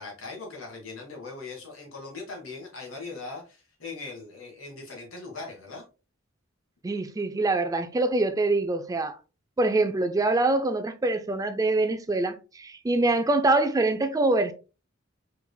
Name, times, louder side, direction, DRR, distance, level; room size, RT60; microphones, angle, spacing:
voice 1, 0.0-5.8, left 3 dB, 80° left, 1.7 m, -40 dB
voice 2, 6.8-9.2 9.6-14.5, right 2 dB, 15° right, 0.3 m, -24 dB
4.6 x 3.4 x 2.2 m
head